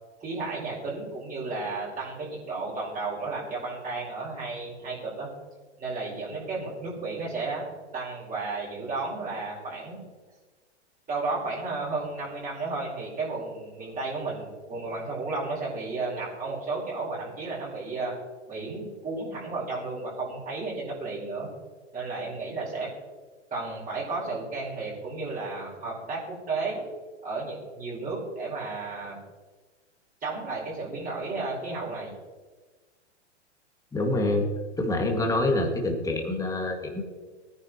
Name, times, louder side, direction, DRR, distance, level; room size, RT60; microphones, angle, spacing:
voice 1, 0.2-5.3 5.8-7.6 7.9-10.0 11.1-18.1 18.5-21.5 21.9-22.9 23.5-26.8 27.2-29.2 30.2-32.1, right 3 dB, 25° right, -4 dB, 4.7 m, -33 dB
voice 2, 33.9-34.4 34.8-37.0, left 2 dB, 10° left, 2 dB, 2.2 m, -26 dB
19.0 x 10.0 x 3.1 m, 1.3 s
hypercardioid pair, 115°, 36 cm